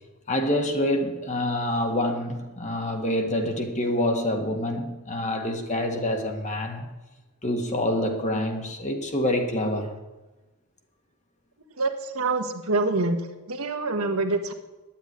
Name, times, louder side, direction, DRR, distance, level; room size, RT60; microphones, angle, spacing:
voice 1, 0.3-6.9 7.4-9.9, left 1 dB, 35° left, 1.7 m, -26 dB
voice 2, 11.8-13.2 13.5-14.5, right 3 dB, 75° right, 1.3 m, -25 dB
10.5 x 9.1 x 9.4 m
head